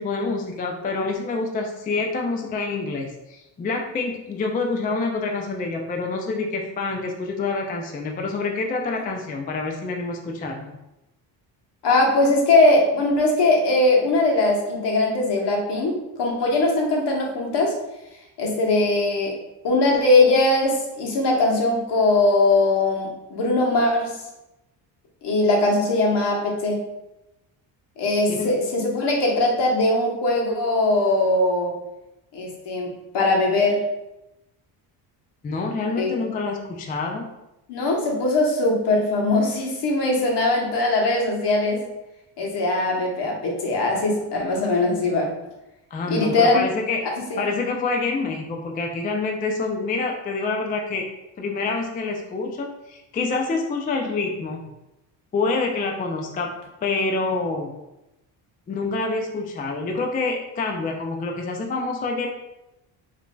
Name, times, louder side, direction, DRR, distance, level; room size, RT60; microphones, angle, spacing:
voice 1, 0.0-10.7 28.3-28.6 35.4-37.3 45.9-47.0 47.4-51.1 51.4-54.7 55.3-56.5 56.8-57.7 58.7-62.3, left 3 dB, 20° left, 2 dB, 0.3 m, -27 dB
voice 2, 11.8-17.8 18.4-19.4 19.6-24.1 25.2-26.8 28.0-31.7 32.3-33.8 36.0-36.2 37.7-41.8 42.4-45.3 46.1-46.7 47.3-47.4, left 2 dB, 60° left, -1 dB, 1.1 m, -20 dB
4.8 x 2.7 x 2.2 m, 0.94 s
cardioid pair, 100°, 46 cm